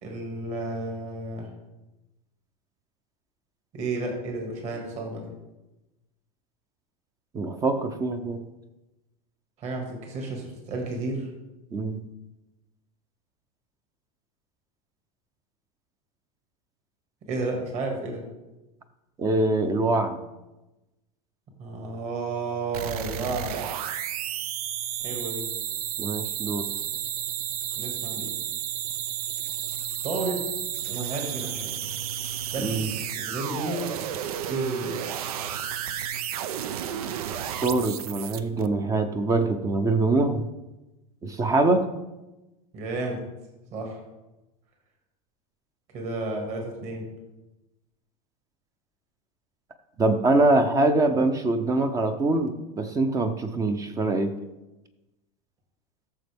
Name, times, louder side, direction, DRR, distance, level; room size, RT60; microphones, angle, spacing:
voice 1, 0.0-1.5 3.7-5.3 9.6-11.3 17.3-18.3 21.6-23.7 25.0-25.5 27.8-28.3 30.0-30.5 30.8-31.8 32.5-32.8 33.1-33.9 34.5-35.0 42.7-43.2 43.7-44.0 45.9-47.1, right 2 dB, 40° right, 1 dB, 2.1 m, -32 dB
voice 2, 7.3-8.4 11.7-12.0 19.2-20.2 26.0-26.7 32.6-32.9 37.6-40.5 41.2-41.9 50.0-54.3, right 2 dB, 20° right, 9 dB, 0.6 m, -24 dB
sound 1, 22.7-38.7, right 10 dB, 85° right, 0.6 m, -32 dB
13.5 x 6.7 x 3.5 m, 1.0 s
supercardioid pair, 145°, 18 cm